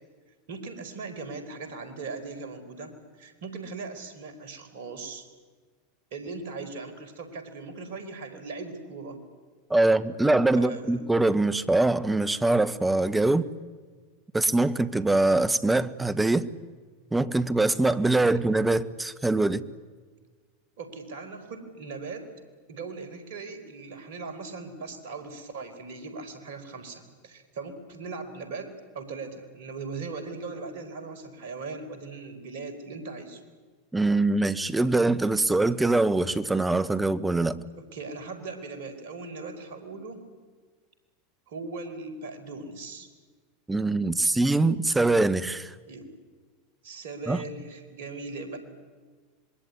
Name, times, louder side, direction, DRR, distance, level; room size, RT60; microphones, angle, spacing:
voice 1, 0.5-5.3 6.1-9.2 10.5-11.0 20.8-22.3 22.7-33.4 37.9-40.2 41.5-43.1 45.9-46.1 46.8-48.6, right 4 dB, 65° right, 9 dB, 4.7 m, -39 dB
voice 2, 9.7-13.5 14.3-16.5 17.1-19.7 33.9-37.6 43.7-45.7 47.3-47.4, right 2 dB, 10° right, 13 dB, 1.4 m, -23 dB
26.5 x 21.5 x 9.8 m, 1.5 s
figure-of-eight pair, 85°, 0 cm